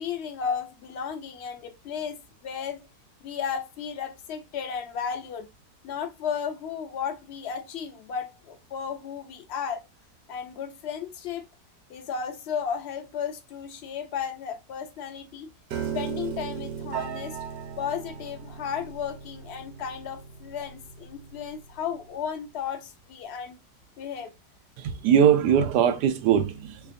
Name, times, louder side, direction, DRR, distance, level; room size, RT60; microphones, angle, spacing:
voice 1, 0.0-2.2 2.4-2.8 3.2-5.5 5.8-9.8 10.3-11.4 11.9-15.5 15.9-17.4 17.8-23.6 24.0-24.3 26.8-26.9, left 7 dB, 60° left, 0.7 m, -34 dB
Piano, 15.7-21.9, right 7 dB, 70° right, 1.2 m, -37 dB
voice 2, 24.8-26.9, right 9 dB, 90° right, 1.2 m, -21 dB
4.5 x 2.4 x 2.5 m
omnidirectional pair, 1.7 m